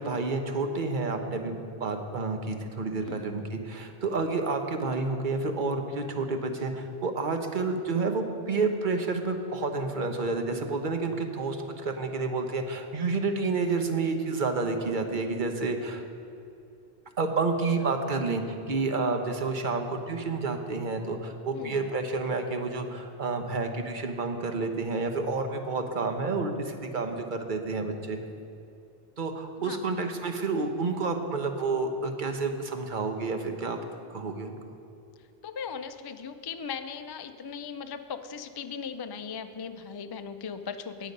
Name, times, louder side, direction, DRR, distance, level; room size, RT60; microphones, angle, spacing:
voice 1, 0.0-16.0 17.2-28.2 29.2-33.8 34.1-34.7, right 3 dB, 55° right, 5 dB, 1.1 m, -30 dB
voice 2, 21.5-21.9 29.6-29.8 35.4-41.1, left 6 dB, 35° left, 9 dB, 0.4 m, -38 dB
18.0 x 6.3 x 5.3 m, 2.6 s
omnidirectional pair, 1.0 m